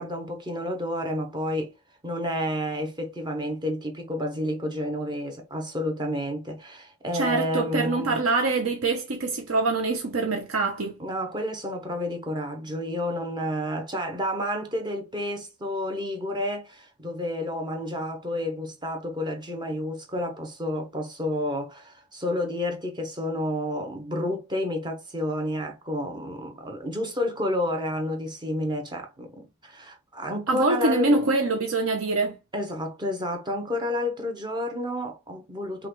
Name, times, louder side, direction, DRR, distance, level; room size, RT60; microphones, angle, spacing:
voice 1, 0.0-1.7 2.0-8.2 11.0-31.3 32.5-35.9, left 1 dB, 20° right, 0.9 m, -30 dB
voice 2, 7.1-10.9 30.5-32.4, right 3 dB, 65° right, 0.7 m, -24 dB
5.6 x 2.4 x 3.1 m
head